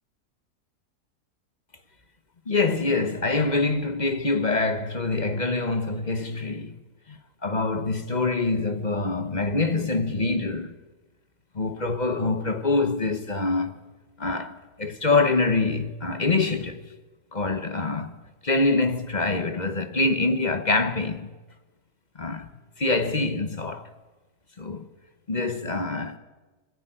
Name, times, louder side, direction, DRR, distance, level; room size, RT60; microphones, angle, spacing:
voice 1, 2.5-6.8 7.1-10.7 11.5-13.7 14.2-16.8 17.3-18.2 18.4-21.3 22.2-22.5 22.8-23.9 24.6-24.9 25.3-26.2, left 3 dB, 30° left, 1.1 m, -25 dB
22.0 x 14.5 x 9.1 m
omnidirectional pair, 1.6 m